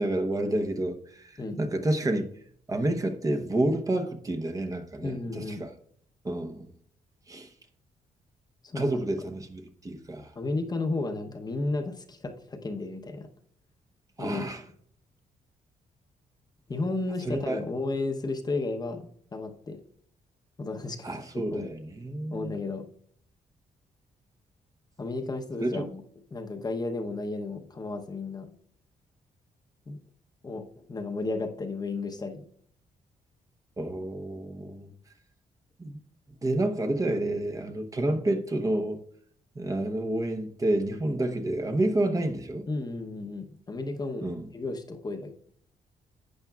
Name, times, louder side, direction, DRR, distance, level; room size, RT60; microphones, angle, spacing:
voice 1, 0.0-2.3 2.7-5.7 6.2-6.7 7.3-7.5 8.7-10.3 14.2-14.6 17.2-17.6 21.0-22.5 25.6-25.9 33.8-34.9 35.8-36.0 36.4-39.0 39.5-42.6 44.2-44.5, right 1 dB, 25° right, 0.9 m, -29 dB
voice 2, 5.0-5.6 8.6-9.0 10.4-13.3 14.2-14.5 16.7-19.8 20.6-21.1 21.3-21.7 22.3-22.9 25.0-26.0 26.3-28.5 29.9-30.0 30.4-32.5 38.1-38.2 42.7-45.3, left 3 dB, 30° left, 0.9 m, -33 dB
11.5 x 8.0 x 2.4 m
cardioid pair, 100°, 14 cm